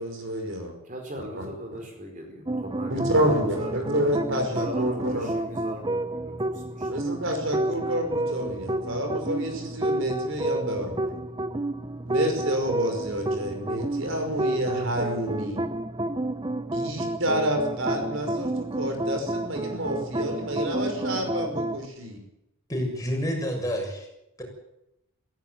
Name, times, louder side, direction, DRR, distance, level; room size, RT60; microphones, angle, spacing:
voice 1, 0.0-0.7 1.4-1.5 2.9-5.3 6.9-11.1 12.1-15.7 16.7-22.2, equal, 65° right, 5 dB, 5.5 m, -28 dB
voice 2, 0.8-4.0 4.4-7.1, right 1 dB, 40° right, 3 dB, 4.6 m, -39 dB
sound 1, 2.5-21.9, right 1 dB, 20° right, 0.7 m, -30 dB
voice 3, 22.7-24.1 24.4-24.5, equal, 15° left, 0 dB, 7.0 m, -28 dB
17.5 x 16.5 x 9.4 m, 0.85 s
head